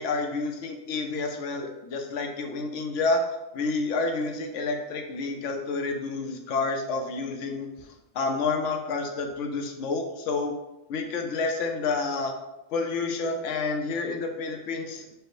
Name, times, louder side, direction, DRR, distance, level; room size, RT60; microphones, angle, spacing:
voice 1, 0.0-3.2 3.5-7.7 8.1-10.5 10.9-12.3 12.7-15.1, left 3 dB, 75° left, 4 dB, 1.0 m, -29 dB
4.9 x 2.1 x 4.6 m, 0.96 s
omnidirectional pair, 1.3 m